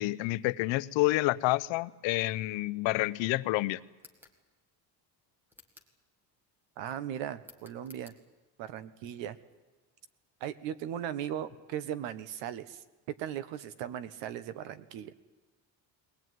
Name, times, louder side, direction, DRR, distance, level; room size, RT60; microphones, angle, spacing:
voice 1, 0.0-3.8, left 19 dB, 90° left, 15 dB, 0.9 m, -29 dB
sound 1, 3.9-4.4 5.5-6.0 7.4-8.2, left 2 dB, 5° right, 1.8 m, -56 dB
voice 2, 6.8-8.1 8.6-9.4 10.4-12.8 13.2-15.1, right 10 dB, 90° right, 14 dB, 1.5 m, -38 dB
22.0 x 19.0 x 9.5 m, 1.3 s
cardioid pair, 180°, 43 cm